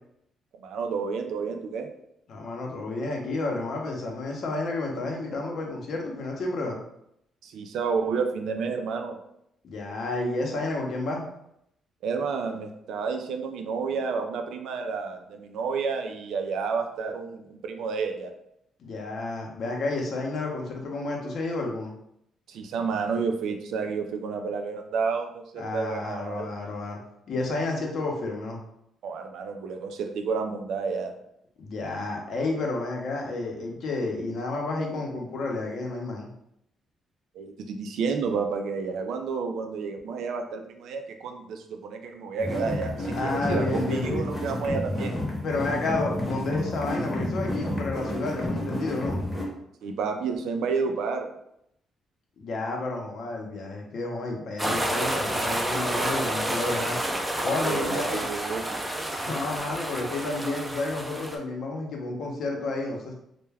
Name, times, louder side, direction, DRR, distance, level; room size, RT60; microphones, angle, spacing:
voice 1, 0.6-1.9 7.4-9.2 12.0-18.3 22.5-26.5 29.0-31.1 37.3-45.2 49.8-51.3 57.6-58.6, right 5 dB, 80° right, 4 dB, 0.3 m, -30 dB
voice 2, 2.3-6.8 9.6-11.3 18.8-21.9 25.6-27.0 27.3-28.6 31.6-36.3 43.2-44.3 45.4-49.2 52.4-57.0 57.4-58.2 59.1-63.1, left 2 dB, 65° left, 0 dB, 0.7 m, -31 dB
sound 1, 42.4-49.4, left 1 dB, 20° left, 0.8 m, -30 dB
sound 2, 54.6-61.4, right 1 dB, 10° right, 0.4 m, -29 dB
2.2 x 2.1 x 3.3 m, 0.77 s
cardioid pair, 90°, 0 cm